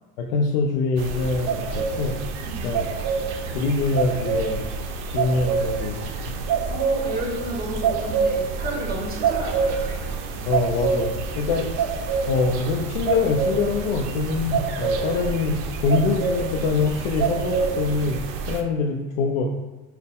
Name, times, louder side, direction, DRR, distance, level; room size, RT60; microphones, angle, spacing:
voice 1, 0.2-2.2 2.6-3.0 3.5-4.6 5.1-6.1 10.5-11.9 12.3-19.5, left 4 dB, 85° left, 1 dB, 0.5 m, -24 dB
sound 1, 1.0-18.6, right 5 dB, 55° right, 0.6 m, -27 dB
voice 2, 6.7-10.0, right 1 dB, 25° right, -1 dB, 1.1 m, -32 dB
4.3 x 2.1 x 3.5 m, 1.1 s
supercardioid pair, 115°, 34 cm